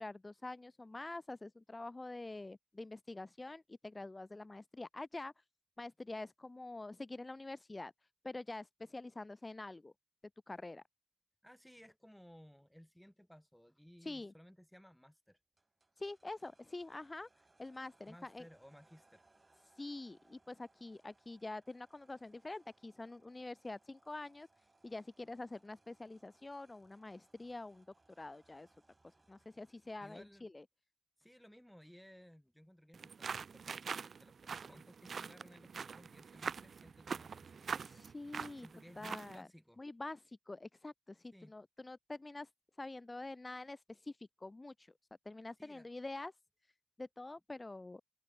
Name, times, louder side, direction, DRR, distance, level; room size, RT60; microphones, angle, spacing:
voice 1, 0.0-5.4 5.8-7.9 8.2-9.9 10.5-10.8 14.0-14.3 16.0-17.3 17.6-18.4 19.8-24.5 24.8-27.8 28.2-28.7 29.0-30.6 37.8-38.7 39.0-39.5 39.8-42.5 42.8-44.9 45.2-46.3 47.0-48.0, left 2 dB, 25° left, 1.6 m, -46 dB
voice 2, 11.4-15.4 18.1-19.2 30.0-30.5 31.2-38.0 38.6-39.8 41.3-41.5 45.6-45.9, equal, 5° left, 6.8 m, -59 dB
sound 1, 15.6-30.4, right 2 dB, 30° right, 7.8 m, -72 dB
sound 2, 32.9-39.4, right 6 dB, 80° right, 1.5 m, -44 dB
open air
wide cardioid pair, 110°, 0 cm